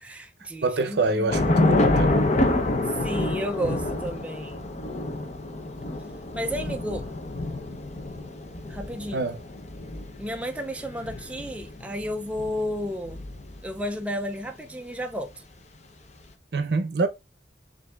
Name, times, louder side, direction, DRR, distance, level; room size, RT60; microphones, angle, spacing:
voice 1, 0.0-1.3 2.9-4.6 6.3-7.1 8.7-9.2 10.2-13.2 13.6-15.4, equal, 5° right, 0.3 m, -32 dB
voice 2, 0.6-2.1 9.1-9.4 16.5-17.1, right 3 dB, 65° right, 0.6 m, -26 dB
Thunder / Rain, 1.3-13.8, left 2 dB, 40° left, 0.6 m, -27 dB
6.6 x 2.6 x 2.3 m
head